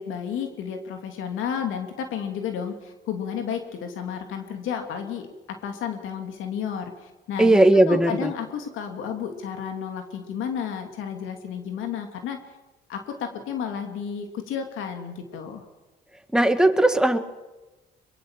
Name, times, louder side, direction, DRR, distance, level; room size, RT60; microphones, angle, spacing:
voice 1, 0.0-5.3 5.6-7.6 7.9-12.4 12.9-15.6, left 7 dB, 90° left, 5 dB, 2.8 m, -32 dB
voice 2, 7.4-8.3 16.3-17.2, right 1 dB, 5° right, 7 dB, 1.9 m, -18 dB
23.0 x 22.5 x 7.5 m, 1.1 s
cardioid pair, 90°, 20 cm